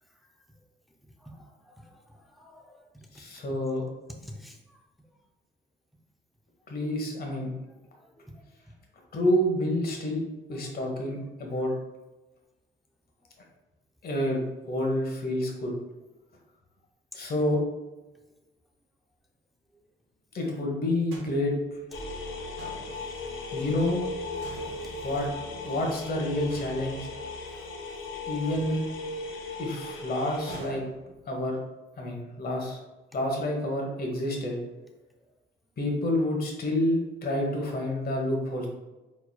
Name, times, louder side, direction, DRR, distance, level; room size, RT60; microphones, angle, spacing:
voice 1, 1.0-2.9 3.1-3.3 4.1-4.8 7.9-8.7 10.5-10.7 11.7-11.8 17.1-17.2 20.4-20.5 22.1-22.6 24.8-25.1 27.3-27.7 33.3-33.4 35.2-35.3, equal, ahead, 1 dB, 0.6 m, -50 dB
voice 2, 3.1-3.8 6.7-7.5 9.1-10.2 10.5-11.7 14.0-15.7 17.1-17.6 20.3-21.5 23.5-24.0 25.0-25.3 25.6-27.1 28.3-28.8 29.6-30.8 31.3-31.6 32.0-32.8 33.1-34.6 35.8-38.7, left 1 dB, 50° left, 0 dB, 1.3 m, -28 dB
sound 1, 21.1-22.0 22.6-23.5 24.4-25.6 26.5-27.5 28.5-29.5 30.5-31.6, right 2 dB, 85° right, 0.9 m, -47 dB
sound 2, 21.9-30.6, left 3 dB, 80° left, 0.8 m, -37 dB
4.4 x 4.2 x 2.3 m, 1.1 s
cardioid pair, 90°, 20 cm